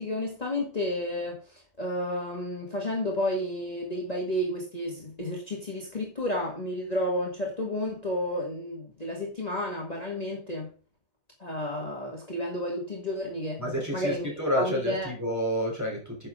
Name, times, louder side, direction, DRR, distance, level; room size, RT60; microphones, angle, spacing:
voice 1, 0.0-10.7 11.4-13.6 13.9-14.3 14.5-15.1, left 1 dB, 30° left, 2.0 m, -31 dB
voice 2, 13.6-16.3, equal, 10° right, 3.3 m, -29 dB
10.0 x 6.4 x 3.7 m
omnidirectional pair, 1.4 m